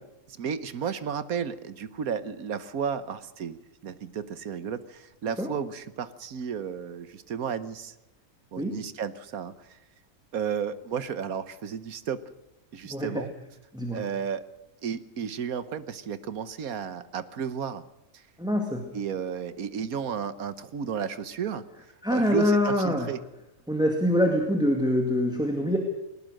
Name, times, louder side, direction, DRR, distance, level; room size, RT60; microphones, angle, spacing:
voice 1, 0.3-3.6 3.8-7.9 8.5-9.8 10.3-12.2 12.7-13.3 13.9-14.5 14.8-17.8 18.1-18.2 18.9-21.6 22.1-23.2, right 7 dB, 75° right, 14 dB, 1.5 m, -33 dB
voice 2, 12.8-13.3 13.7-14.0 18.4-18.8 22.0-23.1 23.7-25.8, left 1 dB, 5° right, 3 dB, 2.0 m, -25 dB
20.5 x 19.5 x 6.4 m, 0.90 s
omnidirectional pair, 1.5 m